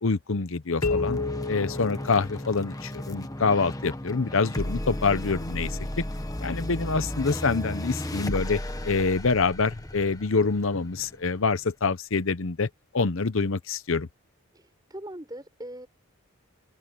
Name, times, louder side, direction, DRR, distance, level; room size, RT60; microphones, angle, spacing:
voice 1, 0.0-1.2 1.5-5.8 6.4-12.7 12.9-14.1, left 4 dB, 60° left, 0.8 m, -26 dB
sound 1, 0.8-2.8, left 4 dB, 75° left, 1.9 m, -31 dB
sound 2, 0.8-11.6, left 1 dB, 15° left, 1.2 m, -34 dB
voice 2, 14.5-15.9, right 1 dB, 15° right, 6.8 m, -41 dB
open air
head